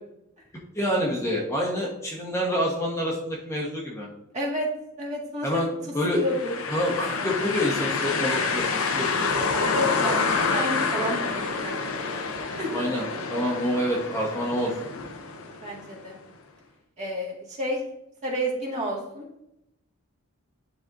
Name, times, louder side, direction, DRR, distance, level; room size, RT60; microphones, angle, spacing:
voice 1, 0.7-4.1 5.4-5.7 5.9-6.2 6.7-9.3 12.7-13.0 13.3-14.7, equal, 15° left, -3 dB, 1.1 m, -27 dB
voice 2, 4.3-4.7 5.0-5.6 6.1-6.6 9.6-12.2 12.6-12.8 15.6-16.2 17.0-17.8 18.2-19.3, equal, 35° right, -3 dB, 1.8 m, -31 dB
sound 1, 6.2-16.0, left 4 dB, 75° left, 0.8 m, -28 dB
10.0 x 4.1 x 2.6 m, 0.84 s
head